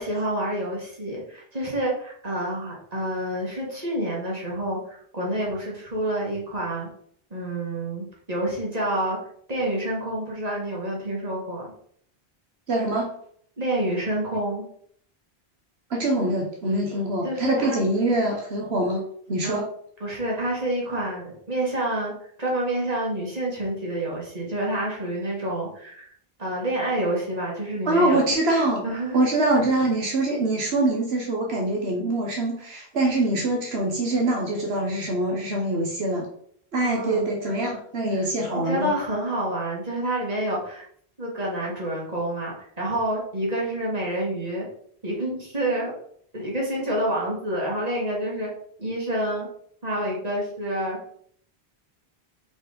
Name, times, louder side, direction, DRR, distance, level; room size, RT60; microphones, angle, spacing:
voice 1, 0.0-6.9 7.3-9.2 9.5-11.7 13.6-14.7 17.2-17.8 19.4-19.6 20.0-22.1 22.4-26.1 26.4-28.2 28.8-29.2 36.8-37.3 38.1-38.2 38.5-40.8 41.2-44.7 45.0-45.9 46.3-48.5 48.8-49.5 49.8-51.0, right 1 dB, 40° right, -4 dB, 2.3 m, -28 dB
voice 2, 12.7-13.1 15.9-19.7 27.8-28.8 29.1-36.3 36.7-38.9, right 2 dB, 80° right, 0 dB, 1.4 m, -24 dB
5.1 x 4.7 x 5.1 m, 0.63 s
omnidirectional pair, 1.0 m